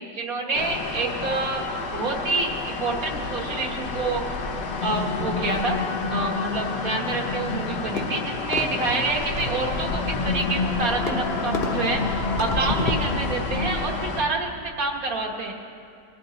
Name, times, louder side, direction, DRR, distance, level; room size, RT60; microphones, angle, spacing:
voice 1, 0.1-1.7 1.9-4.2 4.8-5.8 6.1-15.5, right 3 dB, 55° right, 1 dB, 1.6 m, -27 dB
sound 1, 0.5-14.2, left 3 dB, 80° left, 1.6 m, -31 dB
sound 2, 4.5-14.3, left 3 dB, 60° left, 0.6 m, -31 dB
Fireworks, 7.4-13.5, left 2 dB, 40° left, 1.2 m, -35 dB
20.5 x 10.5 x 4.0 m, 2.5 s
omnidirectional pair, 1.9 m